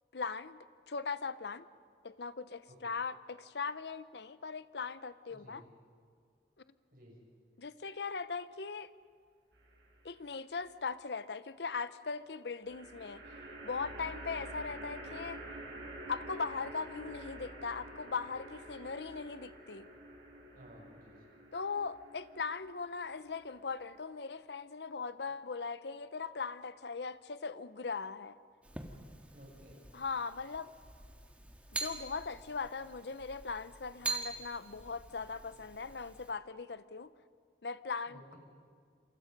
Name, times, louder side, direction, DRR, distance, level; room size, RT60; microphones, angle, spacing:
voice 1, 0.1-1.7 2.0-5.6 7.6-8.9 10.0-13.2 13.6-15.4 16.1-19.9 21.5-28.4 29.9-30.7 31.7-37.1 37.6-38.3, left 5 dB, 70° left, 14 dB, 0.8 m, -39 dB
voice 2, 5.3-5.6 6.9-7.2 20.5-21.2 29.3-29.8 38.1-38.4, equal, 50° right, -1 dB, 6.6 m, -55 dB
sound 1, 9.5-10.2 12.6-24.0, right 1 dB, 75° right, 5.6 m, -48 dB
sound 2, 28.6-36.3, right 3 dB, 10° right, 1.7 m, -44 dB
28.0 x 25.0 x 5.3 m, 2.1 s
head